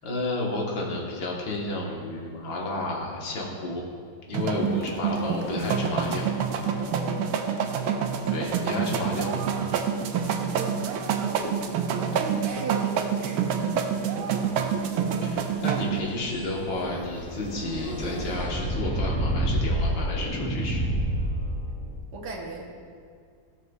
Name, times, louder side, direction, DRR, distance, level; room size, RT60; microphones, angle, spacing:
voice 1, 0.0-3.8 4.3-6.3 8.3-9.5 14.2-14.7 15.2-20.8, left 2 dB, 70° left, -2 dB, 2.0 m, -31 dB
sound 1, 4.3-16.0, right 7 dB, 90° right, 1.4 m, -27 dB
sound 2, 4.5-18.3, left 1 dB, 50° left, 1.8 m, -42 dB
voice 2, 6.9-7.9 10.5-13.5 22.1-22.6, right 3 dB, 60° right, 0 dB, 1.6 m, -38 dB
sound 3, 15.6-22.0, right 1 dB, 5° left, 1.0 m, -29 dB
15.0 x 6.7 x 2.4 m, 2.2 s
omnidirectional pair, 2.1 m